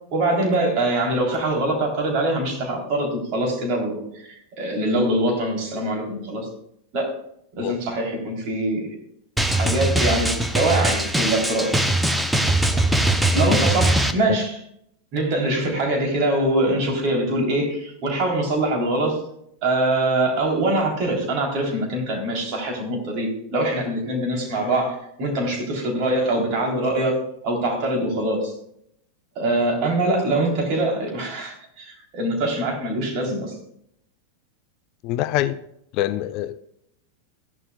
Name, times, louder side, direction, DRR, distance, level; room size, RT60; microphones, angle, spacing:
voice 1, 0.1-6.5 6.9-7.1 7.5-8.9 9.5-11.7 13.3-14.6 15.1-19.2 19.6-27.2 27.4-28.5 29.4-33.6, right 1 dB, 40° right, 0 dB, 3.7 m, -23 dB
Drum, 9.4-14.1, right 1 dB, 5° right, 0.8 m, -21 dB
voice 2, 35.0-35.6 35.9-36.6, left 14 dB, 40° left, 14 dB, 0.5 m, -25 dB
15.0 x 11.5 x 2.4 m, 0.73 s
figure-of-eight pair, 90°, 0 cm